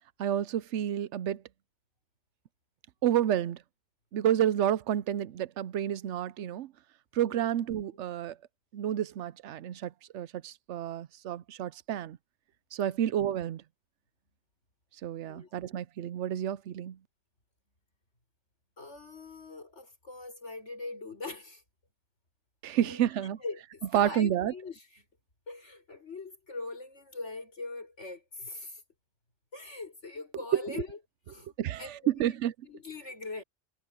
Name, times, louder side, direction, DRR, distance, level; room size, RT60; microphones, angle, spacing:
voice 1, 0.2-1.4 3.0-3.6 4.1-6.7 7.1-8.3 8.7-12.2 12.7-13.6 15.0-17.0 22.6-23.4 23.9-24.5 30.7-30.8 31.6-32.5, right 11 dB, 90° right, 0.9 m, -30 dB
voice 2, 15.3-15.8 18.8-21.6 22.8-23.0 23.4-25.0 25.5-28.8 29.5-31.0 31.3-32.3 32.6-33.4, left 3 dB, 90° left, 5.9 m, -42 dB
omnidirectional pair, 1.2 m